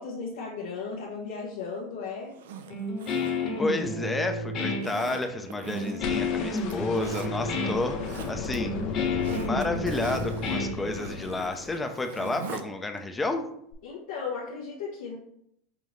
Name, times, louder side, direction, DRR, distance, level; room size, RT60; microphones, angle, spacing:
voice 1, 0.0-2.4 13.8-15.1, left 5 dB, 80° left, -5 dB, 1.0 m, -35 dB
Zipper (clothing), 2.3-4.2 4.8-6.2 6.6-7.3 7.8-8.6 8.9-12.7 13.0-13.1, right 7 dB, 85° right, 0.4 m, -42 dB
Guitar, 2.7-11.3, left 2 dB, 45° left, 1.4 m, -31 dB
voice 2, 3.6-8.8 9.4-13.5, left 2 dB, 15° left, 6 dB, 0.5 m, -31 dB
sound 1, 6.0-12.2 13.7-13.8, left 4 dB, 60° left, 0.7 m, -35 dB
5.6 x 2.6 x 3.2 m, 0.71 s
hypercardioid pair, 105°, 0 cm